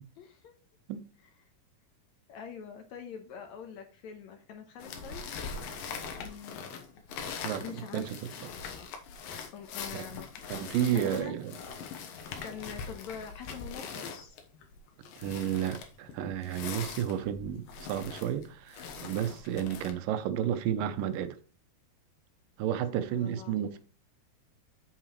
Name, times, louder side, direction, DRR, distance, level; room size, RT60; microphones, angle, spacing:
voice 1, 0.2-0.5 2.3-5.9 6.2-6.6 7.6-8.2 9.5-11.4 12.4-14.4 22.9-23.8, left 7 dB, 70° left, 1.9 m, -45 dB
sound 1, 4.8-19.9, left 6 dB, 90° left, 2.8 m, -42 dB
voice 2, 7.4-8.2 9.9-10.1 10.5-11.5 15.2-21.4 22.6-23.8, right 10 dB, 80° right, 2.4 m, -32 dB
8.2 x 7.5 x 3.1 m
omnidirectional pair, 3.9 m